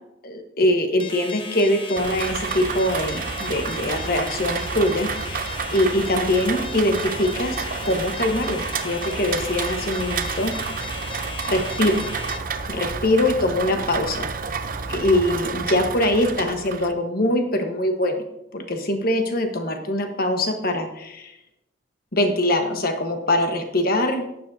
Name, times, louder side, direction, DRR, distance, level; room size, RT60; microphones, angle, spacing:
voice 1, 0.2-10.5 11.4-12.1 12.7-14.3 14.9-18.2 18.5-21.3 22.1-24.3, left 1 dB, 45° left, 5 dB, 1.2 m, -23 dB
sound 1, 1.0-12.4, left 4 dB, 25° left, 0.7 m, -36 dB
Rain, 1.9-16.9, right 5 dB, 45° right, 0.6 m, -30 dB
15.0 x 9.9 x 2.7 m, 0.88 s
head